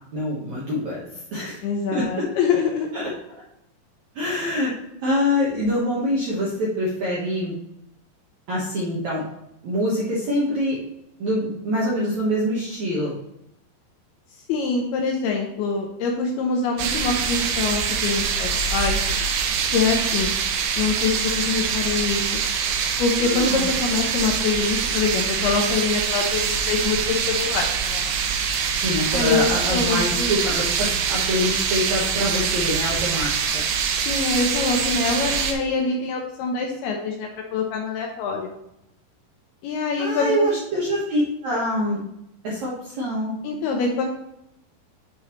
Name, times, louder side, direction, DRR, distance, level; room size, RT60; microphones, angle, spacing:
voice 1, 0.1-1.6 1.9-2.2 2.9-3.1 4.2-4.7 5.0-7.5 8.5-9.2 9.6-10.8 11.2-13.1 23.2-23.7 28.7-33.6 40.0-42.0 42.4-43.3, equal, 65° right, -6 dB, 1.8 m, -25 dB
voice 2, 1.6-2.9 14.5-19.0 19.7-20.3 20.8-22.4 23.0-28.1 29.1-30.3 34.1-38.5 39.6-40.6 43.4-44.1, left 4 dB, 75° left, 1 dB, 2.4 m, -24 dB
sound 1, 16.8-35.5, right 6 dB, 80° right, 2.4 m, -24 dB
9.8 x 5.3 x 3.1 m, 0.81 s
omnidirectional pair, 5.2 m